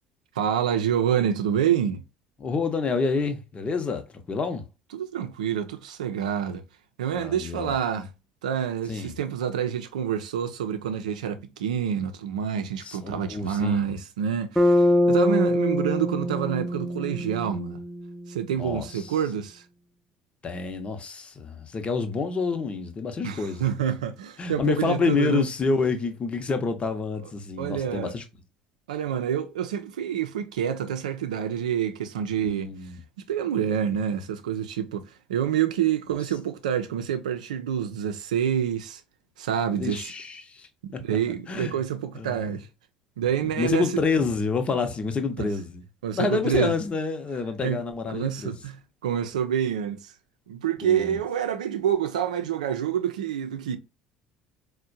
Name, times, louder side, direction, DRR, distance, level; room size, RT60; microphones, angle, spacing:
voice 1, 0.4-2.0 4.9-6.6 7.0-8.1 8.4-17.8 18.3-19.6 23.2-25.5 27.6-28.1 28.9-32.7 33.3-39.0 39.4-40.1 40.8-42.7 43.2-43.9 45.4-45.5 46.0-46.7 47.6-47.8 48.1-50.1 50.5-53.8, right 9 dB, 75° right, 0.5 m, -27 dB
voice 2, 2.4-4.7 7.1-7.7 8.9-9.2 12.8-13.9 18.6-19.1 20.4-23.6 24.4-28.2 32.4-33.0 39.8-41.0 41.5-41.8 42.1-42.4 43.6-45.8 46.1-48.5 50.8-51.2, left 4 dB, 30° left, 0.8 m, -28 dB
Bass guitar, 14.6-18.6, left 1 dB, ahead, 0.6 m, -24 dB
4.3 x 2.2 x 2.5 m
figure-of-eight pair, 60°, 4 cm